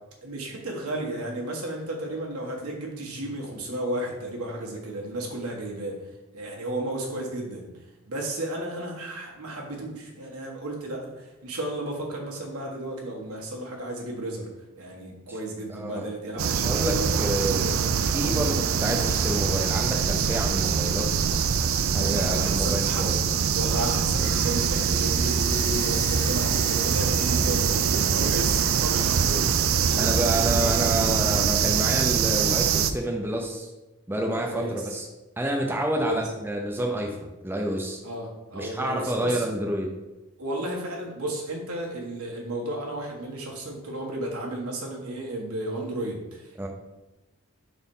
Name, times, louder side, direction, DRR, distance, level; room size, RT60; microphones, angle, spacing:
voice 1, 0.2-6.0 6.3-7.7 8.1-14.5 14.8-17.1 22.0-23.1 23.3-30.7 34.3-35.0 35.9-36.2 38.0-39.4 40.4-46.7, right 1 dB, 90° right, -2 dB, 1.5 m, -33 dB
voice 2, 15.7-21.4 21.9-23.2 30.0-33.7 34.1-35.1 35.4-38.0 38.5-39.9 46.6-46.7, right 1 dB, 10° right, 1 dB, 0.5 m, -29 dB
sound 1, 16.4-32.9, right 7 dB, 65° right, 0.4 m, -24 dB
sound 2, 24.1-28.7, left 4 dB, 55° left, 1.3 m, -40 dB
4.3 x 4.1 x 5.4 m, 1.1 s
head